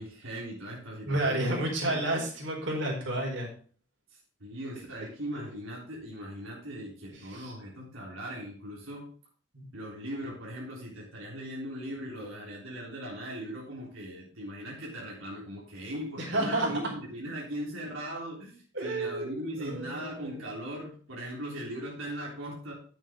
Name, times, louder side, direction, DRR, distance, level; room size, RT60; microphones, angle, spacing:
voice 1, 0.0-1.4 1.9-2.0 4.4-9.1 9.7-22.7, equal, 90° right, -4 dB, 3.7 m, -39 dB
voice 2, 1.0-3.5 5.3-5.4 7.1-7.5 9.5-9.7 16.2-16.7 18.7-20.4, right 1 dB, 65° right, -1 dB, 4.3 m, -31 dB
10.5 x 8.8 x 3.7 m, 0.44 s
head